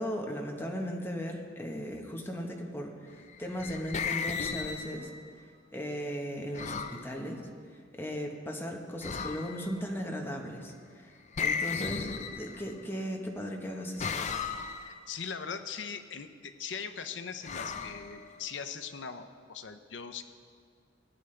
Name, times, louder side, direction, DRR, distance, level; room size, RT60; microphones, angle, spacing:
voice 1, 0.0-5.1 5.7-7.4 7.7-11.1 11.4-14.2, equal, 10° left, 1 dB, 1.1 m, -37 dB
sound 1, 3.3-5.3 6.5-7.1 9.0-9.7 11.3-12.8 14.0-15.0 17.4-18.6, left 6 dB, 40° left, 0.5 m, -35 dB
voice 2, 14.8-20.2, left 6 dB, 80° left, 9 dB, 0.7 m, -40 dB
18.0 x 9.6 x 3.3 m, 2.1 s
head